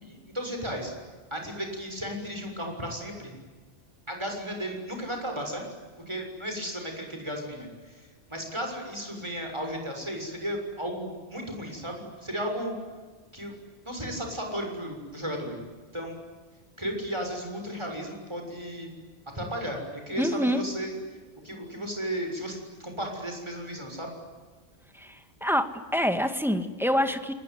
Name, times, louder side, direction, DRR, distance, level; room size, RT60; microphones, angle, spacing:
voice 1, 0.0-0.9 1.3-3.3 4.1-5.6 6.1-12.7 13.3-13.5 13.8-15.6 15.9-16.2 16.8-18.9 19.3-20.9 21.4-24.1, equal, 25° right, 3 dB, 6.8 m, -34 dB
voice 2, 20.2-20.6 25.0-25.2 25.4-27.3, equal, ahead, 7 dB, 1.9 m, -26 dB
28.5 x 21.0 x 9.5 m, 1.4 s
omnidirectional pair, 1.2 m